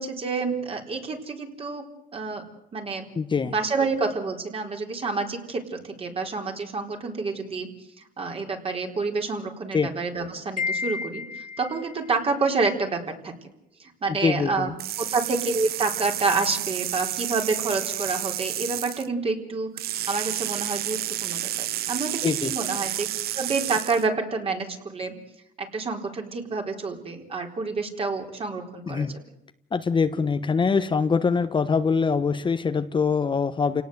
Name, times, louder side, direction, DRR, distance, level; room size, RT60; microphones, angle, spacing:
voice 1, 0.0-1.8 2.1-2.4 2.7-3.1 3.4-7.7 8.0-13.3 13.8-14.7 15.0-19.7 20.1-23.1 23.3-25.2 25.6-29.1, right 4 dB, 35° right, 3 dB, 4.2 m, -28 dB
voice 2, 3.2-3.5 9.7-9.9 14.2-14.7 22.2-22.5 28.9-29.1 29.7-33.8, left 5 dB, 30° left, 9 dB, 1.2 m, -23 dB
Wind chime, 10.6-12.0, left 5 dB, 50° left, 0.8 m, -31 dB
sound 1, 14.8-19.1 19.8-24.1, right 13 dB, 65° right, 0.8 m, -30 dB
29.0 x 18.0 x 8.0 m, 0.85 s
cardioid pair, 110°, 17 cm